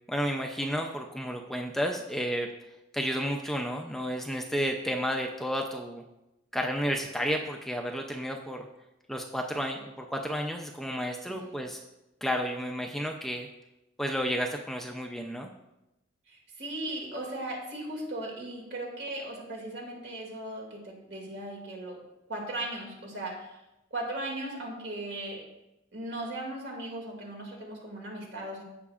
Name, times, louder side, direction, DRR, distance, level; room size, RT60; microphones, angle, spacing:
voice 1, 0.1-2.5 2.9-6.0 6.5-8.7 9.1-11.8 12.2-13.5 14.0-15.5, equal, ahead, 2 dB, 0.5 m, -31 dB
voice 2, 16.3-22.0 22.3-23.6 23.9-25.4 25.9-28.6, right 1 dB, 60° right, 0 dB, 2.2 m, -37 dB
15.5 x 5.8 x 2.4 m, 0.93 s
head